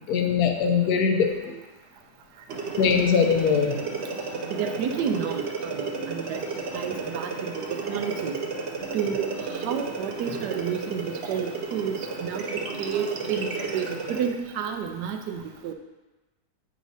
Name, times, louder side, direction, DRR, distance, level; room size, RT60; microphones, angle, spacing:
voice 1, 0.1-1.3 2.8-3.7, left 6 dB, 70° left, 4 dB, 1.1 m, -21 dB
sound 1, 2.5-14.3, right 4 dB, 60° right, 0.7 m, -33 dB
voice 2, 4.5-6.4 6.7-7.5 7.9-8.4 8.9-15.7, right 7 dB, 80° right, 6 dB, 1.2 m, -31 dB
9.1 x 4.7 x 2.7 m, 1.1 s
omnidirectional pair, 1.8 m